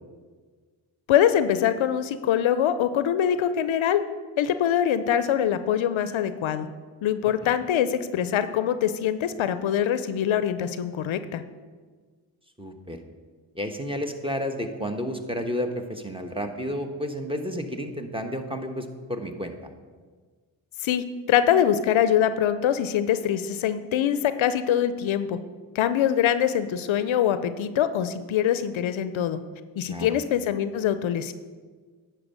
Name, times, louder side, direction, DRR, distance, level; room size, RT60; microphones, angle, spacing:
voice 1, 1.1-4.0 4.4-6.7 7.0-11.4 20.8-25.4 25.7-29.4 29.8-31.3, left 9 dB, 70° left, 12 dB, 0.6 m, -23 dB
voice 2, 12.6-13.0 13.5-19.5 29.9-30.1, equal, 10° right, 6 dB, 1.2 m, -31 dB
10.0 x 4.6 x 6.5 m, 1.5 s
supercardioid pair, 40°, 49 cm